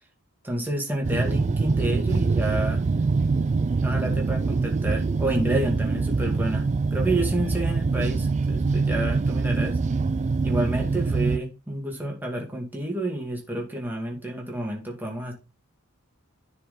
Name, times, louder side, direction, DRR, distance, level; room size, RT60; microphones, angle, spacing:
voice 1, 0.4-2.8 3.8-9.8 10.4-15.3, right 1 dB, 10° right, 0 dB, 2.2 m, -29 dB
sound 1, 1.0-11.4, right 4 dB, 30° right, 0.3 m, -24 dB
10.0 x 4.8 x 3.8 m, 0.28 s
head